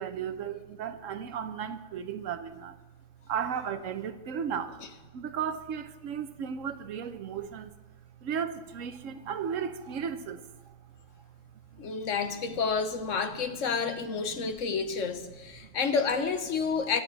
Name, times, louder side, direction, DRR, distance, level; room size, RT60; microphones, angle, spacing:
voice 1, 0.0-2.8 3.3-4.8 5.1-7.7 8.2-10.8 11.7-11.9 14.4-14.5 15.6-15.7, right 7 dB, 85° right, 1.2 m, -35 dB
voice 2, 11.8-17.0, left 5 dB, 75° left, 1.4 m, -29 dB
22.0 x 8.7 x 4.1 m
omnidirectional pair, 1.3 m